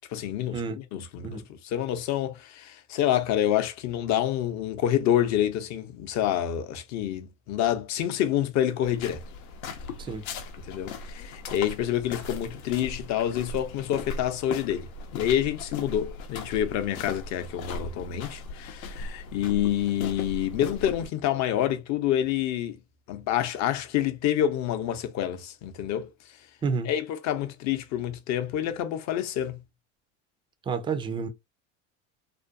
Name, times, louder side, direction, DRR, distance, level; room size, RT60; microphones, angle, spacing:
voice 1, 0.1-9.2 10.7-22.8 23.1-26.1 26.8-29.6, left 11 dB, 45° left, 0.6 m, -27 dB
sound 1, 8.8-21.1, left 4 dB, 80° left, 0.7 m, -38 dB
voice 2, 30.7-31.3, right 5 dB, 15° right, 0.3 m, -30 dB
2.5 x 2.2 x 2.5 m
hypercardioid pair, 90°, 41 cm